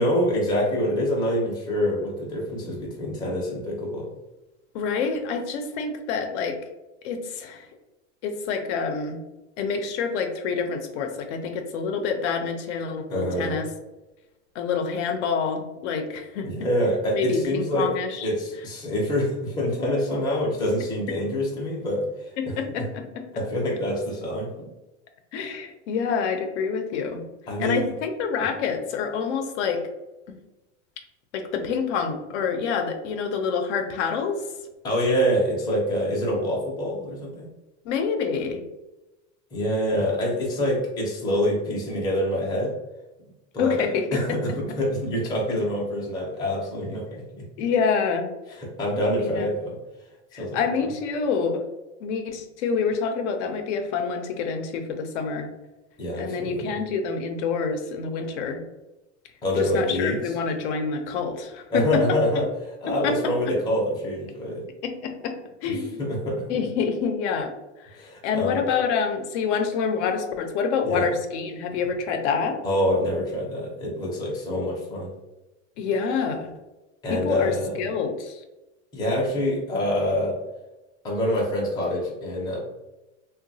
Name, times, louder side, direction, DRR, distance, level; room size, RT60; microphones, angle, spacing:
voice 1, 0.0-4.1 13.1-13.6 16.4-17.9 18.2-22.0 22.5-22.6 23.3-24.7 27.5-27.9 34.8-37.5 39.5-42.8 43.5-47.4 48.8-49.8 50.4-50.6 56.0-56.7 59.4-60.2 61.7-64.7 65.7-66.5 68.0-68.6 70.8-71.1 72.6-75.1 77.0-77.8 78.9-80.4 81.0-82.6, equal, 10° left, -4 dB, 0.5 m, -26 dB
voice 2, 4.7-6.6 7.0-7.7 8.2-9.2 9.6-13.7 14.5-16.5 17.1-18.3 22.4-23.3 25.3-27.2 27.6-29.8 30.3-30.4 31.3-34.4 37.9-38.6 43.6-44.4 47.6-48.3 49.2-49.5 50.3-51.6 52.0-55.5 56.2-58.6 59.5-62.4 62.9-63.5 64.8-65.3 65.6-66.0 66.5-67.5 67.8-67.9 68.2-72.6 75.8-76.5 77.1-78.4, left 5 dB, 70° left, 5 dB, 0.6 m, -27 dB
2.9 x 2.2 x 2.6 m, 1.0 s
supercardioid pair, 155°, 36 cm